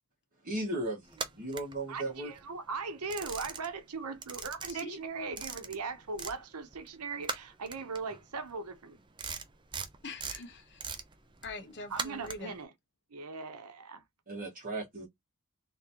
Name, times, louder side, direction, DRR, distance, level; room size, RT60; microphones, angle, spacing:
voice 1, 0.4-2.3 14.3-15.1, right 2 dB, 40° right, 1.7 m, -36 dB
sound 1, 1.1-2.4 2.7-6.4 6.7-12.6, right 5 dB, 20° right, 0.5 m, -41 dB
voice 2, 1.9-9.0 11.9-12.7 13.1-14.0, right 4 dB, 90° right, 0.9 m, -39 dB
voice 3, 4.7-5.0 10.0-10.8 11.4-12.6, left 2 dB, 50° left, 1.1 m, -43 dB
3.7 x 3.5 x 2.9 m
head